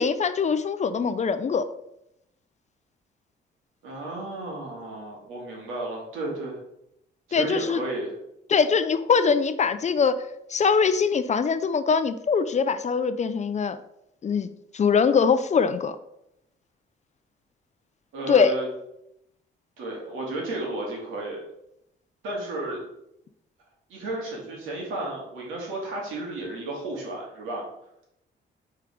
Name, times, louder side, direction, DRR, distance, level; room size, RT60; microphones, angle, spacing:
voice 1, 0.0-1.7 7.3-7.8 8.5-10.2 10.5-13.8 14.2-14.5 14.7-16.0 18.3-18.5, left 5 dB, 35° left, 12 dB, 0.5 m, -22 dB
voice 2, 3.8-6.6 7.3-8.1 18.1-18.7 19.8-21.4 22.2-22.8 23.9-27.6, right 2 dB, 85° right, -2 dB, 2.5 m, -33 dB
5.1 x 4.5 x 5.0 m, 0.81 s
cardioid pair, 90°, 20 cm